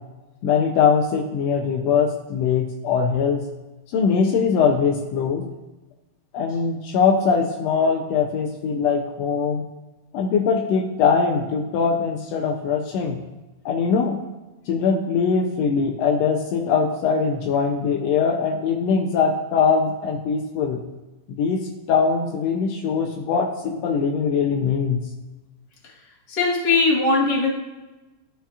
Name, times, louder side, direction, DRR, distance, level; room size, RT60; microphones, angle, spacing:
voice 1, 0.4-3.4 3.9-5.5 6.3-9.6 10.1-13.2 13.6-14.2 14.7-20.8 21.3-25.0, left 6 dB, 85° left, 1 dB, 1.5 m, -21 dB
voice 2, 26.3-27.5, left 3 dB, 45° left, -3 dB, 1.5 m, -19 dB
12.5 x 5.6 x 2.4 m, 1.1 s
omnidirectional pair, 3.6 m